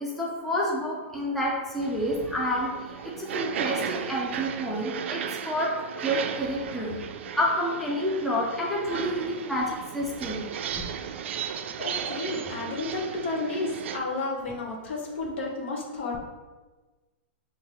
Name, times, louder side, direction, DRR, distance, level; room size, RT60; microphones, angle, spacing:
voice 1, 0.0-2.7 3.2-5.7 6.0-6.9 7.3-10.5 10.7-10.8, equal, 5° left, -3 dB, 0.5 m, -29 dB
sound 1, 1.8-14.0, right 8 dB, 75° right, 0.3 m, -35 dB
voice 2, 11.8-16.2, left 2 dB, 65° left, 0 dB, 1.0 m, -32 dB
5.3 x 2.8 x 2.9 m, 1.3 s
hypercardioid pair, 150°, 6 cm